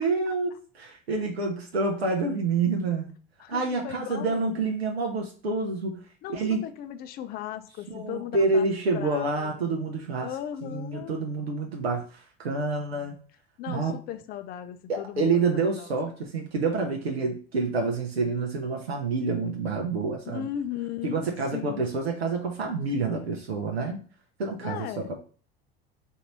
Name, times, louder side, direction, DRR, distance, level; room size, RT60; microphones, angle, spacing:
voice 1, 0.0-3.1 3.5-6.0 6.3-6.6 7.9-10.3 10.6-13.1 13.7-13.9 14.9-20.5 21.0-24.0 24.4-25.2, right 3 dB, 75° right, 2 dB, 0.8 m, -28 dB
voice 2, 3.4-4.4 6.2-8.6 8.9-9.7 10.2-11.2 13.6-15.9 20.3-21.9 24.6-25.0, left 10 dB, 30° left, 10 dB, 0.4 m, -37 dB
3.9 x 2.7 x 4.4 m, 0.41 s
figure-of-eight pair, 75°, 31 cm